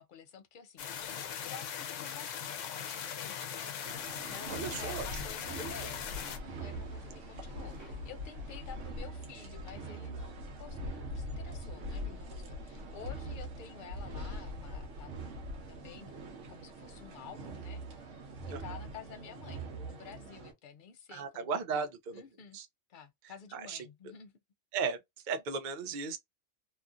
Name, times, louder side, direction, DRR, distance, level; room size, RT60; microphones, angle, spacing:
voice 1, 0.0-6.0 6.4-18.2 18.5-21.9 22.1-22.6 22.9-24.3, left 7 dB, 55° left, 0.6 m, -51 dB
sound 1, 0.8-6.4, left 8 dB, 85° left, 0.9 m, -40 dB
sound 2, 2.9-8.9, right 1 dB, 40° right, 1.7 m, -61 dB
sound 3, 3.8-20.5, right 1 dB, 85° right, 1.2 m, -42 dB
voice 2, 4.5-5.1 5.6-5.7 18.5-18.6 21.1-22.2 22.5-22.7 23.5-23.9 24.7-25.0 25.2-26.2, right 5 dB, 55° right, 0.5 m, -35 dB
3.0 x 2.4 x 2.4 m
omnidirectional pair, 1.2 m